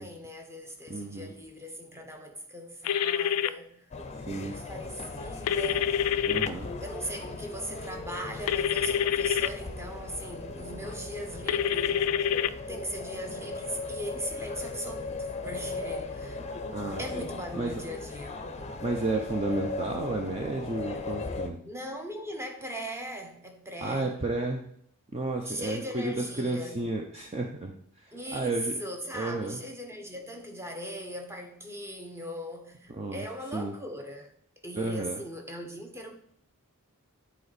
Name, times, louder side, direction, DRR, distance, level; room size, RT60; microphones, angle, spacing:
voice 1, 0.0-3.8 4.4-6.0 6.8-12.0 12.7-16.4 17.0-18.4 21.6-24.2 25.4-26.9 28.1-34.3 34.6-36.1, equal, 10° right, 1.1 m, -39 dB
voice 2, 0.9-1.3 4.3-4.5 6.3-6.7 16.7-17.1 17.6-17.7 18.8-21.6 23.8-24.6 25.1-28.7 29.1-29.6 32.9-33.2 33.5-33.7 34.7-35.2, right 2 dB, 30° right, 0.7 m, -32 dB
sound 1, 2.8-3.5 5.5-6.5 8.5-9.5 11.5-12.5, left 9 dB, 75° left, 0.3 m, -26 dB
sound 2, 3.9-21.5, left 3 dB, 30° left, 0.6 m, -38 dB
9.7 x 4.4 x 4.1 m
head